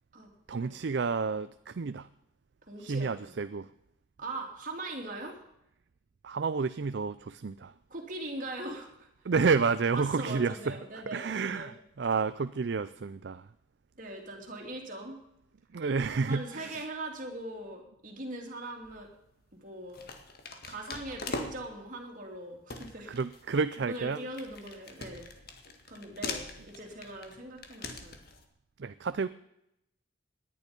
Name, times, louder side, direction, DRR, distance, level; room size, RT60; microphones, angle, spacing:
voice 1, 0.5-2.1 2.8-3.7 6.2-7.7 9.2-13.5 15.7-16.9 23.1-24.2 28.8-29.3, right 5 dB, 60° right, 13 dB, 0.4 m, -30 dB
voice 2, 2.7-3.4 4.2-5.4 7.9-9.1 9.9-11.7 14.0-15.2 16.1-19.1 19.5-20.0 20.6-23.1 23.9-25.3 25.9-28.2, right 1 dB, 40° right, 1 dB, 3.1 m, -41 dB
sound 1, 18.8-19.2 19.9-21.8 22.3-22.4 22.7-28.4, left 3 dB, 50° left, 1.8 m, -42 dB
18.5 x 11.0 x 5.3 m, 0.80 s
head